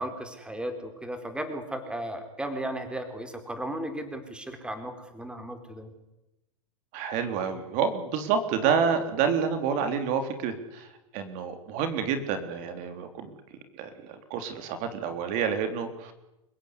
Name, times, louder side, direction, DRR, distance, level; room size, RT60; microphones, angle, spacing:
voice 1, 0.0-5.9, right 1 dB, 5° right, 7 dB, 4.2 m, -35 dB
voice 2, 6.9-10.9 11.1-13.3 13.8-16.1, right 6 dB, 45° right, 8 dB, 3.6 m, -28 dB
29.0 x 16.5 x 9.8 m, 0.95 s
hypercardioid pair, 120°, 18 cm